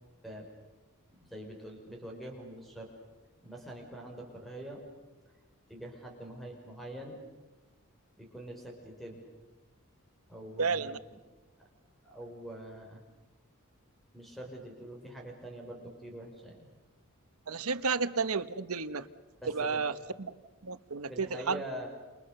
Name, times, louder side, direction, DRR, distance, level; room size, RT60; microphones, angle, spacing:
voice 1, 1.1-2.9 3.4-4.8 5.7-7.2 8.2-9.2 10.3-11.2 12.0-13.0 14.1-16.7 19.4-19.9 21.1-21.9, right 1 dB, ahead, 1 dB, 5.8 m, -44 dB
voice 2, 10.6-11.0 17.5-19.1 19.5-20.3 20.6-21.6, right 4 dB, 80° right, 12 dB, 1.2 m, -32 dB
29.5 x 29.0 x 6.9 m, 1.2 s
head